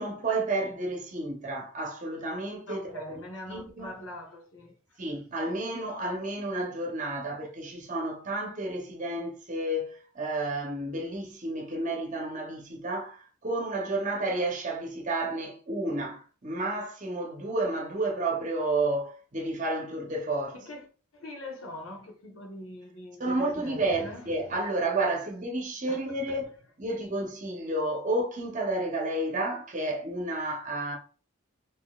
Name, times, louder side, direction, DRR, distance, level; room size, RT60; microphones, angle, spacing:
voice 1, 0.0-2.8 3.5-4.0 5.0-20.6 23.2-26.5 26.8-31.0, right 2 dB, 40° right, 0.8 m, -31 dB
voice 2, 2.7-5.0 20.5-20.9 21.1-24.3 25.9-26.4, left 1 dB, 75° left, 1.0 m, -43 dB
3.7 x 2.8 x 2.3 m
head